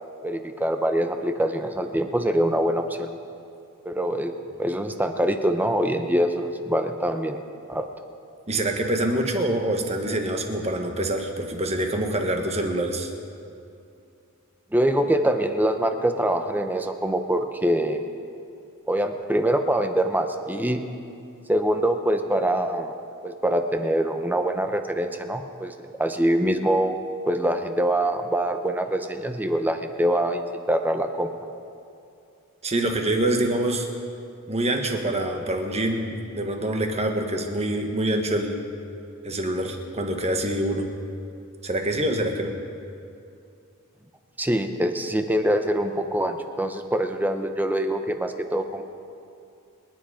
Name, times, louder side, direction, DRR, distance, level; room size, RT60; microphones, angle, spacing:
voice 1, 0.2-3.1 3.8-4.3 4.6-7.4 7.7-7.9 14.7-18.1 18.9-20.8 21.5-22.9 23.2-25.7 26.0-27.0 27.3-31.3 44.4-48.8, right 1 dB, 10° right, 6 dB, 0.8 m, -24 dB
voice 2, 8.5-13.1 32.6-33.9 34.5-38.6 39.2-40.9 41.6-42.6, right 1 dB, 30° right, 4 dB, 1.5 m, -25 dB
25.5 x 10.0 x 5.0 m, 2.5 s
head